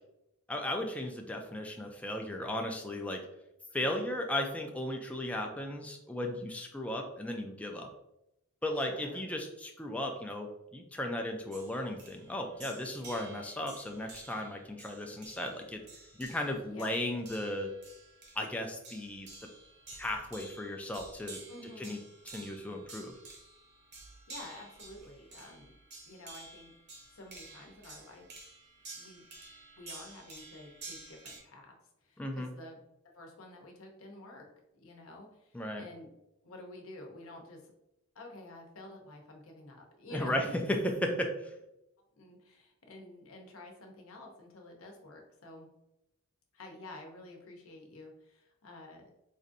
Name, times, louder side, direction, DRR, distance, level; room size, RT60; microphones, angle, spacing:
voice 1, 0.5-3.2 3.7-7.9 8.6-15.8 16.2-17.7 18.4-19.3 20.0-21.4 21.8-22.0 22.3-23.1 32.2-32.5 35.5-35.8 40.1-41.5, left 1 dB, 5° left, 2 dB, 0.3 m, -35 dB
voice 2, 8.8-9.3 16.7-17.0 21.5-22.0 24.3-25.7 26.0-26.7 27.1-28.3 28.9-29.2 29.8-31.7 32.0-32.8 33.1-34.5 34.7-36.1 36.4-37.7 38.1-40.6 42.1-45.7 46.5-49.1, left 1 dB, 70° left, 2 dB, 0.7 m, -50 dB
sound 1, 11.5-31.4, right 3 dB, 50° right, 0.8 m, -51 dB
4.1 x 2.5 x 2.5 m, 0.87 s
head